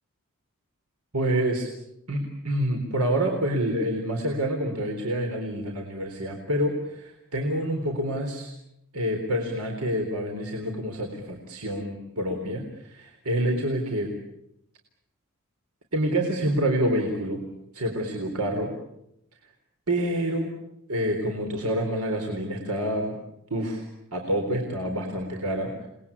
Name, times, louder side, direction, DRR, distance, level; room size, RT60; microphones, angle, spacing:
voice 1, 1.1-1.7 2.1-8.5 8.9-14.1 15.9-17.4 17.7-18.7 19.9-20.5 20.9-23.2 23.5-23.8 24.1-25.9, right 1 dB, 85° right, 2 dB, 4.0 m, -27 dB
30.0 x 21.0 x 8.6 m, 0.80 s
head